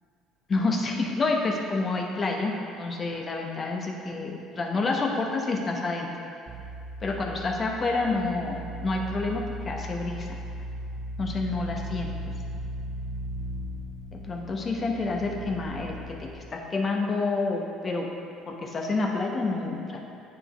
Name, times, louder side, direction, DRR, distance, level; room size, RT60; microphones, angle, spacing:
voice 1, 0.5-6.1 7.0-10.4 11.2-12.1 14.1-18.1 18.5-20.0, left 3 dB, 35° left, 0 dB, 0.9 m, -28 dB
sound 1, 6.5-16.4, equal, 55° right, 0.7 m, -37 dB
9.6 x 3.6 x 3.5 m, 2.6 s
supercardioid pair, 85°, 0 cm